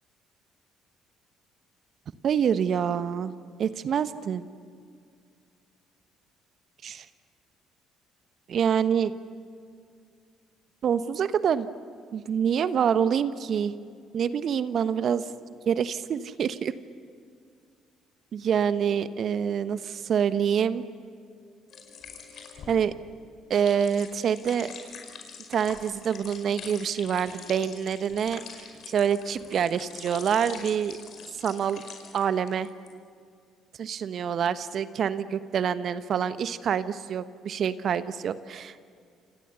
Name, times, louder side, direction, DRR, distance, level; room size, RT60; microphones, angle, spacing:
voice 1, 2.2-3.3 3.6-4.5 6.8-6.9 8.5-9.1 10.8-11.7 12.1-13.7 14.1-15.2 15.7-16.7 18.3-20.8 22.7-22.9 23.5-24.7 25.5-28.4 28.9-31.0 31.4-31.8 32.1-32.7 33.8-38.8, right 8 dB, 55° right, 13 dB, 1.1 m, -26 dB
sound 1, 21.7-32.2 32.5-32.9, left 6 dB, 55° left, 5.2 m, -44 dB
28.5 x 27.5 x 7.0 m, 2.2 s
hypercardioid pair, 50°, 0 cm